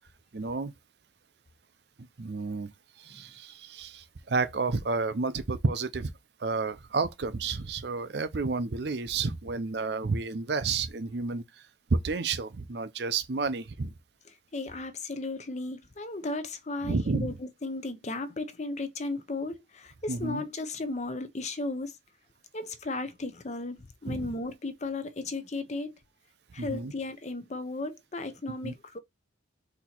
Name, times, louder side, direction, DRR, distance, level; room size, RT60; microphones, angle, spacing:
voice 1, 0.3-0.7 2.2-2.7 3.0-6.1 6.4-11.4 11.9-13.9 16.8-17.3 20.1-20.4 24.1-24.3 26.6-26.9 28.6-28.7, right 4 dB, 60° right, 0.5 m, -30 dB
voice 2, 14.5-22.0 22.5-25.9 26.5-29.0, left 2 dB, 35° left, 0.6 m, -35 dB
4.2 x 2.9 x 4.3 m
head